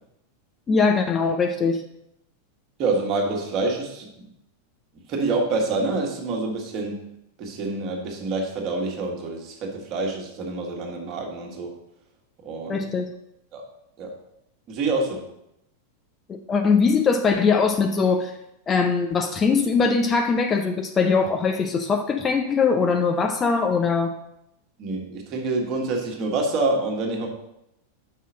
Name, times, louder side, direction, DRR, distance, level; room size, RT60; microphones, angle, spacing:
voice 1, 0.7-1.8 12.7-13.1 16.3-18.4 18.7-24.1, left 5 dB, 20° left, 6 dB, 0.5 m, -21 dB
voice 2, 2.8-4.3 5.1-7.1 7.4-11.8 12.4-12.8 13.5-13.6 14.0-14.1 14.7-15.3 24.8-27.3, right 3 dB, 35° right, 1 dB, 1.7 m, -27 dB
5.6 x 5.5 x 6.1 m, 0.83 s
figure-of-eight pair, 90°, 0 cm